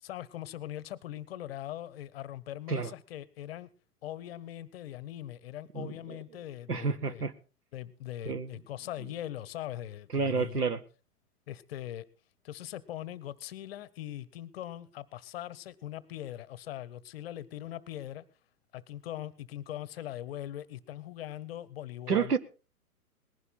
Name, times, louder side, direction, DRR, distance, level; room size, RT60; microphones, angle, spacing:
voice 1, 0.0-3.7 4.0-7.2 7.7-10.6 11.5-12.1 12.4-18.2 18.7-22.4, left 12 dB, 40° left, 20 dB, 0.9 m, -41 dB
voice 2, 5.7-6.2 6.7-7.3 8.3-8.5 10.1-10.8 22.1-22.4, right 5 dB, 85° right, 13 dB, 1.2 m, -29 dB
19.5 x 11.0 x 4.1 m, 0.34 s
figure-of-eight pair, 120°, 46 cm